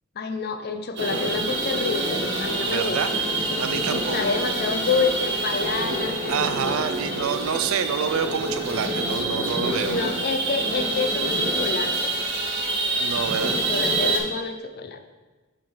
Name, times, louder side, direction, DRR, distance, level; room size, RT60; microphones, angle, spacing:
voice 1, 0.2-3.0 3.9-6.9 9.8-12.1 13.4-15.0, left 4 dB, 50° left, 7 dB, 0.5 m, -28 dB
sound 1, 1.0-14.2, right 2 dB, 55° right, 1.3 m, -26 dB
voice 2, 2.7-3.1 3.6-4.2 6.3-10.1 12.9-13.6, right 7 dB, 75° right, 10 dB, 0.4 m, -27 dB
7.2 x 3.8 x 4.6 m, 1.2 s
head